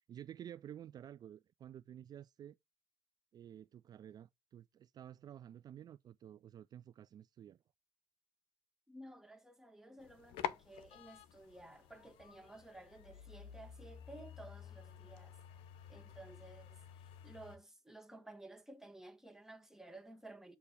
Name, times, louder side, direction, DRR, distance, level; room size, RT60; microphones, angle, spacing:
voice 1, 0.0-2.6 3.3-7.6, right 10 dB, 45° right, 0.3 m, -52 dB
voice 2, 8.9-15.4 15.9-16.8 17.2-20.6, right 2 dB, 5° right, 1.4 m, -55 dB
sound 1, 10.0-17.6, left 10 dB, 70° left, 0.7 m, -49 dB
8.2 x 2.8 x 4.8 m
hypercardioid pair, 60°, 9 cm